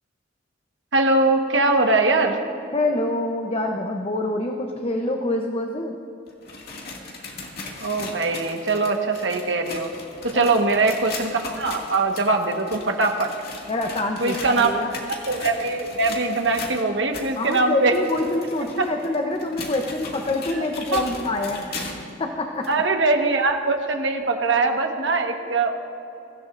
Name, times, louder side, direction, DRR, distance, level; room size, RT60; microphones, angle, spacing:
voice 1, 0.9-2.4 7.8-9.9 10.2-13.3 14.2-14.7 15.3-17.9 18.8-18.9 20.5-20.7 20.9-21.1 22.7-25.7, right 3 dB, 75° right, 3 dB, 1.4 m, -22 dB
voice 2, 2.7-5.9 10.3-10.4 13.7-15.0 17.4-21.7 22.2-22.7, left 2 dB, 30° left, 3 dB, 0.8 m, -26 dB
sound 1, 6.3-22.1 22.6-22.7 23.5-23.6 24.5-24.6, left 3 dB, 55° left, 2.3 m, -38 dB
24.0 x 15.0 x 2.6 m, 2.8 s
head